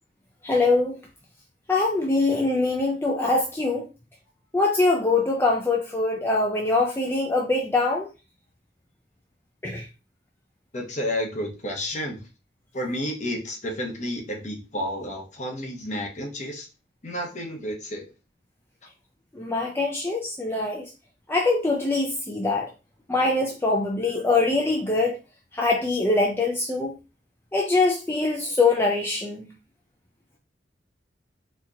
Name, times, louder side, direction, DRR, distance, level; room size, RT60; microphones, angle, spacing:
voice 1, 0.4-0.9 1.7-3.9 4.5-8.1 9.6-9.8 19.3-20.9 21.3-22.7 23.1-25.2 25.5-27.0 27.5-29.5, left 3 dB, 15° left, 0 dB, 0.4 m, -23 dB
voice 2, 10.7-12.2 12.7-16.7 17.0-18.0, equal, 40° left, 1 dB, 0.9 m, -31 dB
4.3 x 2.8 x 2.4 m, 0.30 s
head